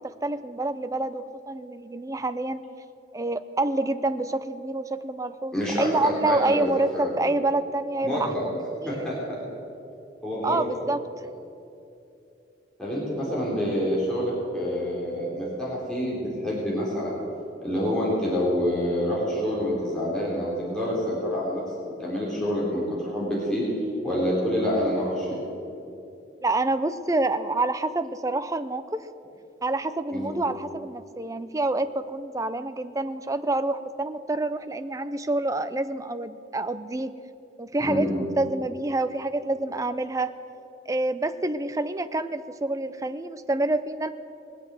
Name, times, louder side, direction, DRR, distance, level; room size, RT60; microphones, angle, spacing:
voice 1, 0.0-2.6 3.1-9.1 10.4-11.0 26.4-29.1 29.6-37.1 37.6-40.3 40.9-44.1, right 2 dB, 15° right, 11 dB, 0.5 m, -27 dB
voice 2, 5.5-6.6 6.9-7.1 8.0-8.4 8.8-9.4 10.2-10.6 12.8-17.2 17.6-21.6 22.0-23.6 24.0-25.3 30.1-30.4 37.8-38.1, equal, 5° left, -7 dB, 3.8 m, -27 dB
20.5 x 8.3 x 7.6 m, 2.8 s
head